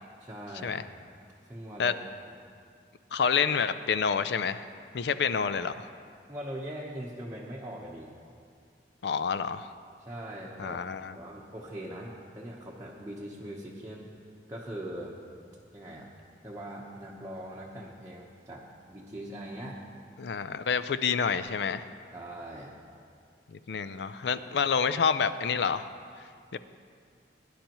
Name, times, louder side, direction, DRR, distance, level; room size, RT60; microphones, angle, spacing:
voice 1, 0.2-0.8 1.5-2.0 6.3-8.1 10.0-10.8 11.1-14.1 14.5-15.2 15.7-16.1 16.4-19.8 22.1-22.7, right 1 dB, 15° right, -6 dB, 1.0 m, -41 dB
voice 2, 3.1-4.7 4.9-5.9 9.0-9.7 10.6-11.1 20.2-21.8 23.5-25.9 26.5-26.6, left 6 dB, 70° left, 13 dB, 0.4 m, -28 dB
18.0 x 10.0 x 3.0 m, 2.3 s
head